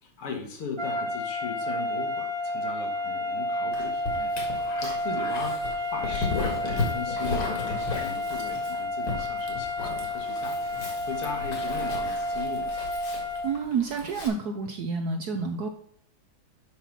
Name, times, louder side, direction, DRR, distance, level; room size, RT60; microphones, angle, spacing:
voice 1, 0.0-12.8, left 5 dB, 85° left, 2 dB, 2.5 m, -38 dB
sound 1, 0.8-13.6, left 1 dB, 25° right, 0.6 m, -31 dB
Dog, 3.7-14.3, left 3 dB, 65° left, 2.5 m, -35 dB
voice 2, 13.4-15.7, right 5 dB, 65° right, 5 dB, 1.0 m, -29 dB
7.2 x 5.5 x 5.9 m, 0.67 s
omnidirectional pair, 2.4 m